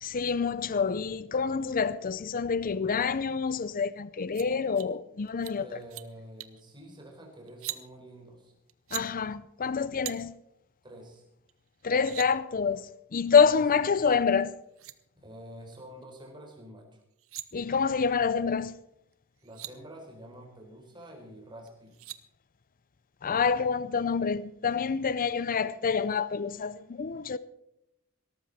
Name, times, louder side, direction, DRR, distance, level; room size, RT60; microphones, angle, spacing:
voice 1, 0.0-5.7 8.9-10.3 11.8-12.9 13.1-14.5 17.5-18.7 23.2-27.4, left 5 dB, 40° left, 0.5 m, -27 dB
sound 1, 4.3-4.5 4.8-4.9 5.3-5.5 5.8-6.1 6.4-6.6 7.5-7.8 8.7-9.1 10.0-10.2 11.5-11.6 11.8-12.3 14.3-14.4 14.7-14.9 17.0-17.5 19.1-19.2 19.4-19.7 21.7-22.2, right 15 dB, 65° right, 0.9 m, -40 dB
voice 2, 5.6-8.5 10.8-11.2 13.4-13.7 15.1-17.0 19.4-22.0, right 1 dB, 20° right, 4.4 m, -48 dB
18.0 x 13.5 x 4.2 m
head